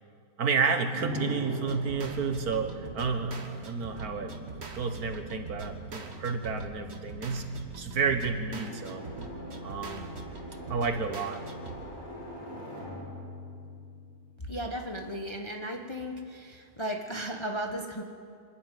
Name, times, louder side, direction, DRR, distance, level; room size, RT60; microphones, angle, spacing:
voice 1, 0.4-9.1 9.6-10.2 10.7-11.5, right 5 dB, 65° right, 7 dB, 1.8 m, -31 dB
sound 1, 0.9-14.7, equal, 90° left, 4.5 m, -42 dB
sound 2, 1.6-12.1, right 3 dB, 40° right, 1.7 m, -43 dB
voice 2, 14.5-18.0, equal, 20° left, 2 dB, 1.1 m, -35 dB
26.0 x 12.0 x 9.2 m, 2.2 s
omnidirectional pair, 1.8 m